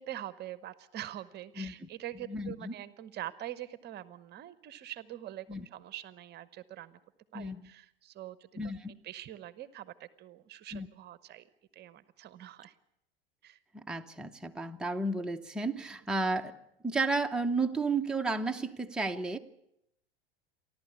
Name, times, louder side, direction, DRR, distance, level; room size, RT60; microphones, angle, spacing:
voice 1, 0.0-7.0 7.3-8.7 9.0-11.5 11.7-12.7 13.4-13.6, right 13 dB, 35° right, 16 dB, 1.0 m, -44 dB
voice 2, 2.3-2.7 5.5-5.7 7.3-7.6 8.6-8.9 10.7-10.9 13.7-16.5 16.8-19.4, right 3 dB, 5° right, 3 dB, 1.0 m, -32 dB
29.0 x 12.0 x 8.4 m, 0.79 s
hypercardioid pair, 85°, 29 cm